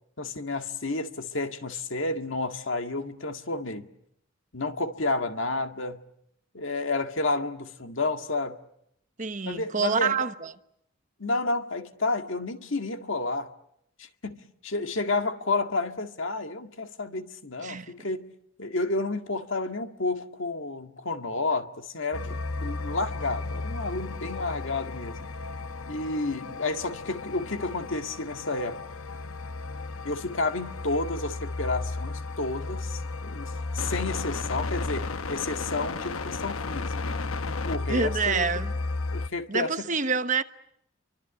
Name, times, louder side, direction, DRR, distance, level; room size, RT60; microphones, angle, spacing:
voice 1, 0.2-3.9 4.5-6.0 6.5-8.6 9.5-10.2 11.2-13.5 14.0-18.3 18.6-25.3 25.9-28.8 30.0-36.9 37.6-38.6 39.1-39.9, left 3 dB, 65° left, 1.9 m, -31 dB
voice 2, 9.2-10.5 17.6-17.9 37.9-38.7 39.5-40.4, right 5 dB, 35° right, 1.1 m, -27 dB
sound 1, 22.1-39.3, left 3 dB, 90° left, 1.0 m, -34 dB
29.0 x 24.5 x 8.4 m
head